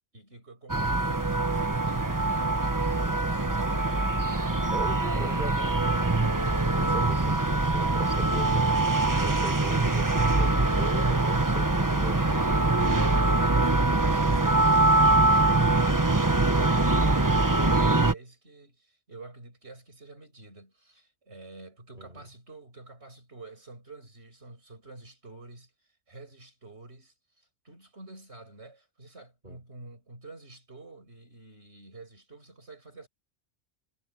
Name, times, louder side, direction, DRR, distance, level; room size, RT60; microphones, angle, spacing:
voice 1, 0.1-4.2 11.0-11.4 12.1-25.7 26.1-33.1, right 3 dB, 80° right, 6.8 m, -48 dB
sound 1, 0.7-18.1, right 2 dB, 20° right, 1.2 m, -23 dB
voice 2, 4.7-12.2 21.9-22.2 29.4-29.6, right 2 dB, 45° right, 6.8 m, -41 dB
omnidirectional pair, 1.1 m